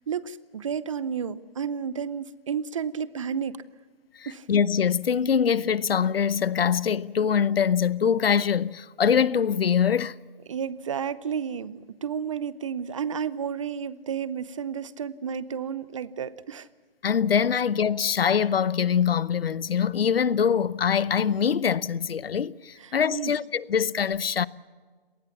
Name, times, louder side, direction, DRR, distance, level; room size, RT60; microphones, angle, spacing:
voice 1, 0.1-3.6 4.3-4.5 10.4-16.7 17.5-17.6 22.8-23.4, right 7 dB, 35° right, 0.6 m, -32 dB
voice 2, 4.2-10.2 17.0-24.5, left 7 dB, 75° left, 0.9 m, -23 dB
26.0 x 19.0 x 7.1 m
hypercardioid pair, 160°, 29 cm